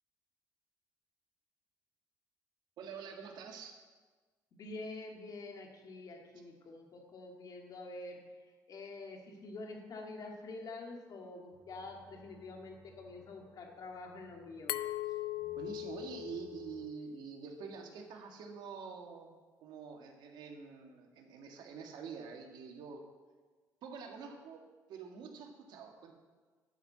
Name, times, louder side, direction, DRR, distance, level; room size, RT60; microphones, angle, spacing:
voice 1, 2.8-3.8 15.6-19.3 19.6-23.0 23.8-24.6 24.9-26.1, right 6 dB, 75° right, 2 dB, 1.7 m, -46 dB
voice 2, 4.5-8.2 8.7-14.7, left 2 dB, 55° left, 2 dB, 2.0 m, -47 dB
sound 1, 11.5-16.9, right 1 dB, 5° right, 2.9 m, -62 dB
Glass, 14.7-17.5, left 15 dB, 80° left, 0.5 m, -40 dB
10.5 x 5.6 x 7.8 m, 1.4 s
cardioid pair, 95°, 8 cm